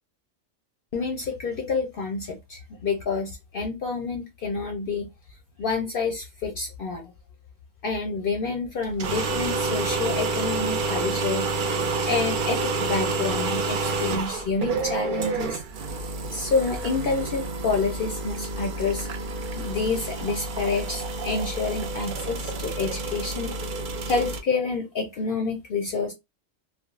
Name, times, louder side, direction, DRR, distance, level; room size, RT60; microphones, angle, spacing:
voice 1, 0.9-5.1 5.6-7.0 7.8-11.5 12.0-15.6 16.3-19.1 19.6-23.5 24.1-26.1, left 4 dB, 60° left, 0.6 m, -28 dB
sound 1, 8.8-24.4, right 3 dB, 65° right, 0.5 m, -29 dB
3.3 x 2.0 x 2.3 m
omnidirectional pair, 1.3 m